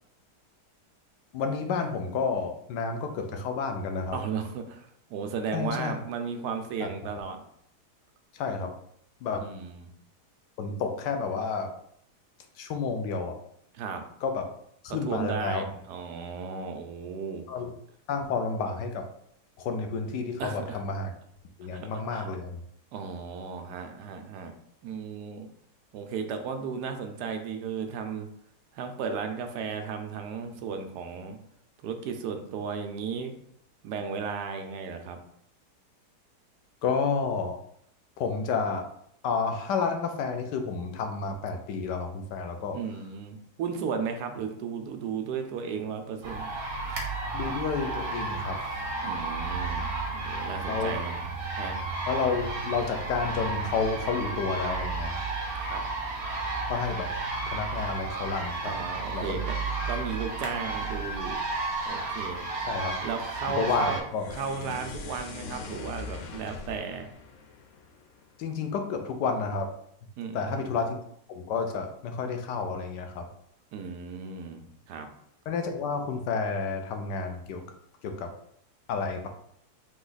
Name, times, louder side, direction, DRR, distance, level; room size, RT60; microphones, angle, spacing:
voice 1, 1.3-4.2 5.5-6.0 6.8-6.9 8.3-8.7 9.2-9.5 10.6-11.7 12.6-13.4 14.2-14.5 14.8-15.6 17.5-17.7 18.1-19.0 19.6-21.1 21.6-22.6 36.8-37.6 38.2-38.9 39.2-42.8 47.3-48.6 50.7-51.0 52.1-55.2 56.7-57.1 57.5-59.4 62.7-63.0 63.5-64.3 68.4-69.7 70.3-71.0 71.3-73.3 75.5-77.6 78.0-78.3 78.9-79.3, left 5 dB, 85° left, 5 dB, 1.3 m, -30 dB
voice 2, 4.1-7.4 9.4-9.9 13.7-14.0 15.1-17.4 20.4-20.8 21.7-22.3 22.9-24.5 24.8-25.5 25.9-28.3 28.7-31.4 31.8-33.3 33.8-35.2 42.7-46.5 49.0-51.2 51.6-51.8 55.6-55.8 58.6-59.6 59.9-61.4 61.9-62.5 63.0-64.0 64.3-67.1 70.2-70.7 73.7-75.1, right 6 dB, 75° right, 5 dB, 1.2 m, -35 dB
sound 1, 46.2-64.0, right 3 dB, 60° right, 1.4 m, -32 dB
sound 2, 64.1-68.5, left 4 dB, 65° left, 0.8 m, -41 dB
3.9 x 3.0 x 3.9 m, 0.69 s
omnidirectional pair, 1.8 m